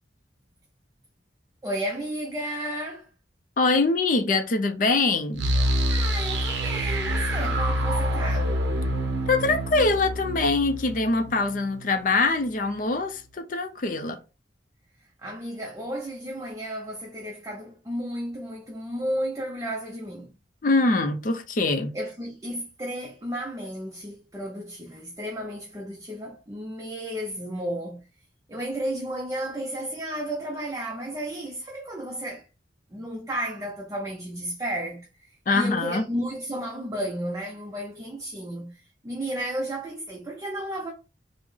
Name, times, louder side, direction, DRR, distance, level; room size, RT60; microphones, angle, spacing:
voice 1, 1.6-3.1 5.9-8.6 15.2-20.3 21.9-28.1 28.5-32.5 32.9-40.9, right 1 dB, 15° right, 0.4 m, -33 dB
voice 2, 3.6-5.5 9.3-14.2 20.6-21.9 35.5-36.1, left 3 dB, 45° left, 0.4 m, -23 dB
sound 1, 5.4-12.2, equal, 65° right, 0.6 m, -27 dB
3.5 x 2.0 x 3.2 m
head